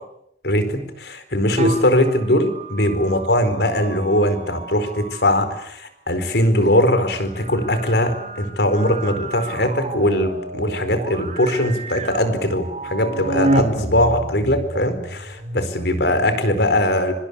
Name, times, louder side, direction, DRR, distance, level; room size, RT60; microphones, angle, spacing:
voice 1, 0.4-17.1, left 1 dB, 65° left, 10 dB, 4.6 m, -20 dB
sound 1, 1.4-5.6 7.2-15.6, right 1 dB, 40° right, 3.5 m, -29 dB
25.5 x 25.5 x 8.4 m, 0.74 s
head